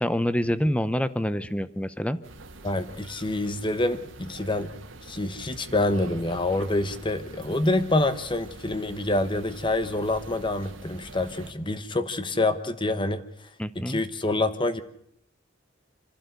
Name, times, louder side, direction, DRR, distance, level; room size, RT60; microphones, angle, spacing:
voice 1, 0.0-2.2 13.6-14.0, equal, 5° left, 14 dB, 0.7 m, -26 dB
sound 1, 2.2-11.5, right 2 dB, 80° right, 1.9 m, -45 dB
voice 2, 2.6-4.7 5.1-13.2 13.7-14.8, left 2 dB, 25° left, 11 dB, 1.1 m, -26 dB
26.5 x 12.0 x 8.2 m, 0.71 s
head